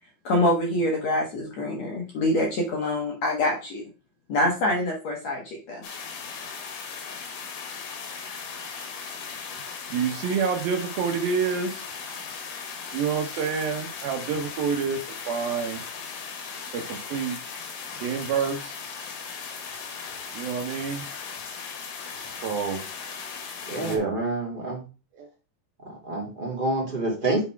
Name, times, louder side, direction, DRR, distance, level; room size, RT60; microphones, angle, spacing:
voice 1, 0.2-3.8 4.3-5.9, left 1 dB, 55° left, -1 dB, 2.1 m, -25 dB
sound 1, 5.8-24.0, left 5 dB, 90° left, 3.6 m, -37 dB
voice 2, 9.9-11.8 12.9-15.0 15.3-15.8 16.7-17.4 18.0-18.8 20.3-21.0 22.4-22.8 23.8-24.2 25.2-25.3, right 6 dB, 75° right, 5 dB, 2.7 m, -27 dB
voice 3, 23.7-24.8 25.8-27.4, right 2 dB, 20° right, -3 dB, 1.8 m, -28 dB
8.1 x 4.1 x 4.6 m, 0.32 s
omnidirectional pair, 4.5 m